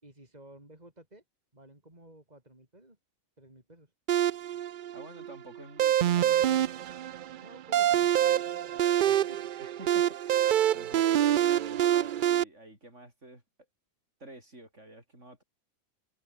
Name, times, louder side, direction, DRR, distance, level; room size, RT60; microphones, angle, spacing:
voice 1, 0.0-1.2 1.5-3.0 3.4-3.9 7.4-9.5 10.7-10.9, right 1 dB, 30° right, 5.4 m, -54 dB
sound 1, 4.1-12.4, right 11 dB, 85° right, 0.4 m, -26 dB
voice 2, 4.9-6.8 9.6-13.4 14.2-15.4, right 1 dB, 60° right, 7.4 m, -49 dB
omnidirectional pair, 1.4 m